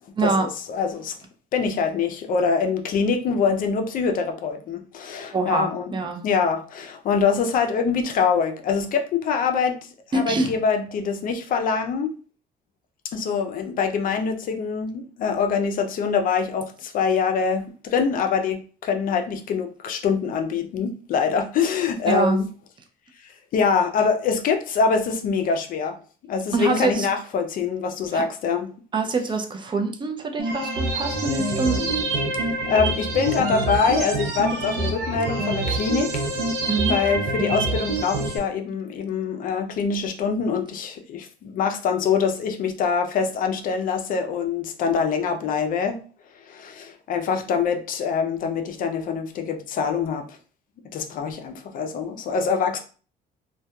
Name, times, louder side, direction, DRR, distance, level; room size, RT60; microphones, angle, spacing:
voice 1, 0.2-1.2 1.5-5.9 6.2-12.1 13.1-22.5 23.2-26.0 26.3-28.7 32.4-36.2 36.9-46.0 46.5-50.3 50.9-52.8, left 5 dB, 55° left, 0.4 m, -24 dB
voice 2, 5.3-6.2 10.1-10.5 22.1-22.4 26.5-27.1 28.1-28.2 28.9-31.9 36.7-37.0, right 3 dB, 30° right, 0.4 m, -24 dB
sound 1, 30.4-38.4, right 2 dB, 80° right, 0.7 m, -26 dB
2.7 x 2.2 x 2.2 m
cardioid pair, 110°, 17 cm